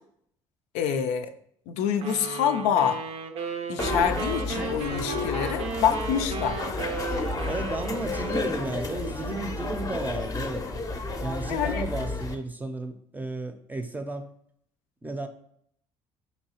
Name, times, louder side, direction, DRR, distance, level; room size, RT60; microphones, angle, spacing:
voice 1, 0.7-1.3 1.7-3.0 3.7-6.6 11.5-11.8, left 8 dB, 75° left, 8 dB, 0.4 m, -26 dB
sound 1, 2.0-9.2, right 5 dB, 60° right, 0.5 m, -35 dB
sound 2, 3.8-12.4, left 3 dB, 30° left, 0.6 m, -31 dB
voice 2, 7.5-10.7 11.2-14.3 15.0-15.3, right 2 dB, 15° right, 7 dB, 0.5 m, -33 dB
4.6 x 2.7 x 2.8 m, 0.67 s
hypercardioid pair, 65°, 12 cm